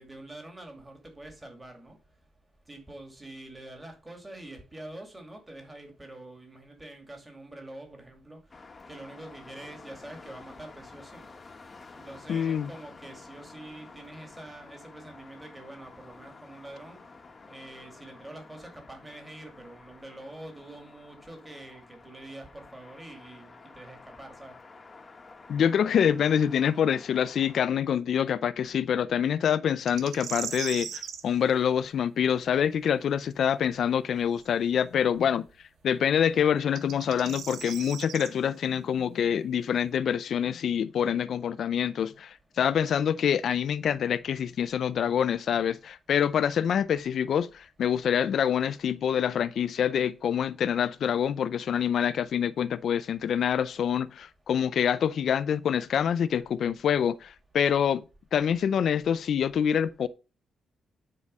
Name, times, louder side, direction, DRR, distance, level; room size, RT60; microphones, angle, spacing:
voice 1, 0.0-2.0 2.7-8.4 8.9-11.2 11.9-17.0 17.5-24.5, right 1 dB, 15° right, 2.3 m, -45 dB
sound 1, 8.5-27.6, left 3 dB, 25° left, 1.1 m, -50 dB
voice 2, 12.3-12.7 25.5-35.5 35.8-58.1 58.3-60.1, left 8 dB, 60° left, 0.5 m, -26 dB
sound 2, 29.9-31.2 34.4-34.5 36.6-38.3, right 8 dB, 85° right, 1.0 m, -37 dB
9.6 x 4.8 x 5.4 m
cardioid pair, 140°, 0 cm